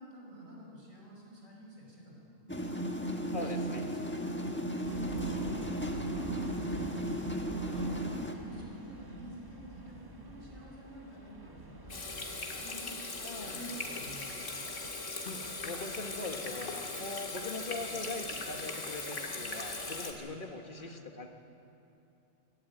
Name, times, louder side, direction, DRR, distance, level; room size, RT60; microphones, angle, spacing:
voice 1, 0.0-7.2 7.4-13.0 13.4-14.6 17.8-18.1 20.8-21.0, right 1 dB, 65° right, -3 dB, 5.3 m, -49 dB
sound 1, 2.5-8.3, right 1 dB, 10° left, 1.2 m, -35 dB
voice 2, 3.3-3.8 13.2-13.9 15.2-21.3, left 3 dB, 40° left, 4 dB, 1.5 m, -41 dB
sound 2, 4.8-20.1, right 1 dB, 15° right, 1.4 m, -47 dB
Water tap faucet / Sink (filling or washing), 11.9-20.1, left 3 dB, 60° left, 2.2 m, -39 dB
24.5 x 12.5 x 9.2 m, 2.9 s
omnidirectional pair, 1.4 m